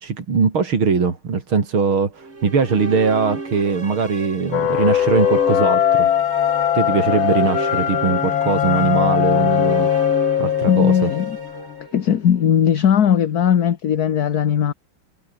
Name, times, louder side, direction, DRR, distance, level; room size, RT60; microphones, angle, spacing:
voice 1, 0.0-6.1 6.7-9.9 10.4-11.1, right 5 dB, 85° right, 4.0 m, -21 dB
sound 1, 2.2-12.4, right 3 dB, 30° right, 3.2 m, -32 dB
sound 2, 4.5-11.9, left 10 dB, 75° left, 2.0 m, -20 dB
voice 2, 10.6-11.4 11.9-14.7, left 9 dB, 55° left, 1.6 m, -18 dB
omnidirectional pair, 2.2 m